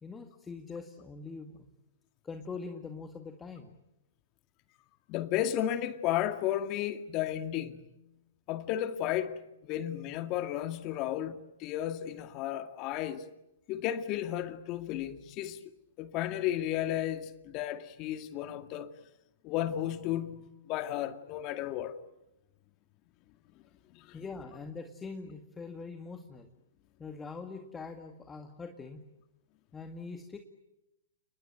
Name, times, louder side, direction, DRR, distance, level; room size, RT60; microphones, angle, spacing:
voice 1, 0.0-1.7 2.2-3.7 24.1-26.5 27.0-29.0 29.7-30.4, left 4 dB, 15° left, 2.0 m, -43 dB
voice 2, 5.1-7.9 8.5-13.2 13.7-15.6 16.0-18.9 19.4-22.0 23.9-24.2, left 12 dB, 40° left, 2.1 m, -33 dB
30.0 x 20.5 x 9.3 m
hypercardioid pair, 115°, 0 cm